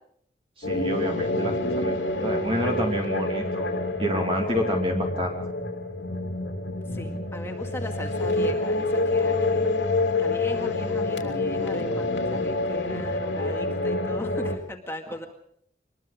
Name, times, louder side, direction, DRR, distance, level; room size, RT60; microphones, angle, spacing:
sound 1, 0.6-14.6, left 2 dB, 85° left, 3.0 m, -27 dB
voice 1, 0.6-3.7 4.0-5.4, equal, 30° right, 1 dB, 2.7 m, -28 dB
voice 2, 6.9-9.7 10.2-15.3, left 1 dB, 15° left, 3 dB, 2.0 m, -38 dB
25.0 x 21.0 x 5.1 m, 0.67 s
head